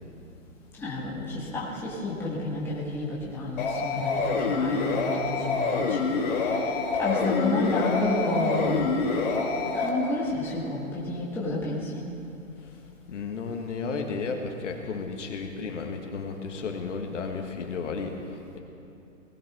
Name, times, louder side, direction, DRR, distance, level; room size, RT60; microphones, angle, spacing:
voice 1, 0.8-6.0 7.0-9.0 9.7-12.1, left 2 dB, 5° left, -7 dB, 1.7 m, -30 dB
sound 1, 3.6-9.9, left 4 dB, 35° left, 2.1 m, -27 dB
voice 2, 13.1-18.2 18.5-18.6, left 4 dB, 55° left, 3 dB, 1.8 m, -33 dB
19.5 x 17.0 x 3.7 m, 2.8 s
hypercardioid pair, 155°, 43 cm